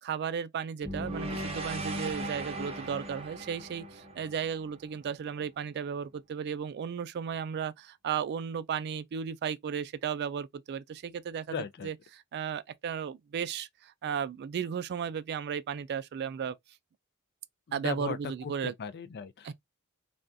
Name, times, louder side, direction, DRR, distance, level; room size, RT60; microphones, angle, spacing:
voice 1, 0.0-11.6 11.8-16.6 17.7-18.7 19.4-19.5, right 7 dB, 50° right, 0.3 m, -35 dB
sound 1, 0.8-5.1, right 1 dB, 30° right, 0.8 m, -38 dB
voice 2, 11.5-11.9 17.7-18.2 18.4-19.5, left 6 dB, 50° left, 0.4 m, -37 dB
3.4 x 2.4 x 2.5 m
head